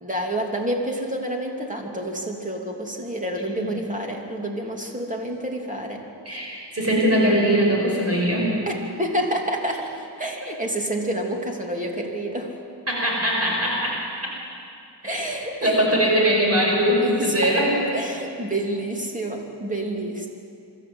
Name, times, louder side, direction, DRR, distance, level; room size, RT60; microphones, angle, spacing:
voice 1, 0.0-6.0 8.7-9.9 10.2-12.5 15.0-15.7 17.0-17.7 17.9-20.3, right 1 dB, 20° right, 0 dB, 2.8 m, -28 dB
voice 2, 6.7-8.6 12.9-14.0 15.0-15.2 15.6-17.7, equal, 35° right, -3 dB, 5.5 m, -21 dB
24.5 x 13.5 x 7.9 m, 2.5 s
wide cardioid pair, 100°, 43 cm